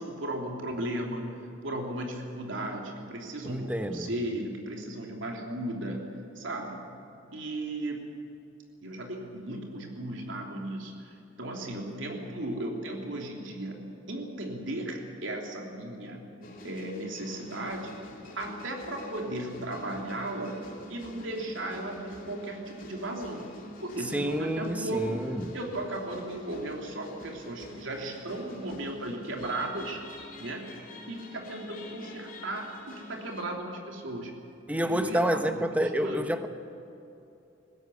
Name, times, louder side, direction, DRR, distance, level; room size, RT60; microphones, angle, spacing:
voice 1, 0.0-6.0 6.3-6.8 7.3-8.0 8.8-16.2 16.6-17.9 18.4-20.6 20.9-23.5 23.8-30.0 30.4-30.7 31.1-34.4 34.8-36.3, right 1 dB, 80° right, 1 dB, 3.2 m, -36 dB
voice 2, 3.4-4.1 24.1-25.6 34.7-36.5, equal, 10° right, 7 dB, 1.1 m, -29 dB
sound 1, 16.4-33.5, left 1 dB, 45° left, 3.0 m, -46 dB
20.5 x 16.0 x 9.9 m, 2.9 s
head